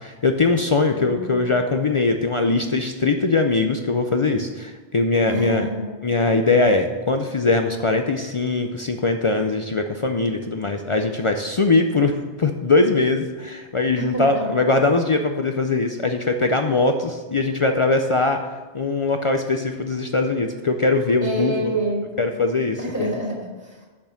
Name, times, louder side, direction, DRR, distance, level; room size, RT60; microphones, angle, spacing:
voice 1, 0.0-5.7 6.0-18.4 18.7-21.8 22.2-23.1, left 3 dB, 55° left, 5 dB, 0.3 m, -21 dB
voice 2, 0.9-1.5 5.3-5.9 14.0-14.5 21.2-22.3 22.8-23.9, right 1 dB, 15° left, -3 dB, 2.7 m, -28 dB
6.5 x 6.0 x 6.9 m, 1.3 s
omnidirectional pair, 1.2 m